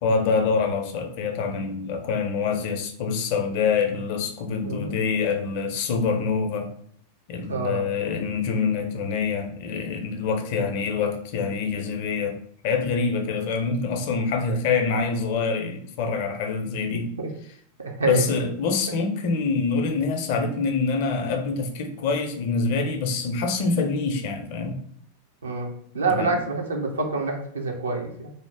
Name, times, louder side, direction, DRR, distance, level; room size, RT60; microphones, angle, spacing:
voice 1, 0.0-6.7 7.3-12.4 12.6-17.1 18.1-24.8 26.1-26.4, left 4 dB, 50° left, 5 dB, 0.5 m, -25 dB
voice 2, 7.5-7.8 16.9-17.3 17.8-18.3 25.4-25.7 25.9-28.3, right 3 dB, 70° right, 2 dB, 0.5 m, -27 dB
2.5 x 2.0 x 3.3 m, 0.63 s
figure-of-eight pair, 90°, 0 cm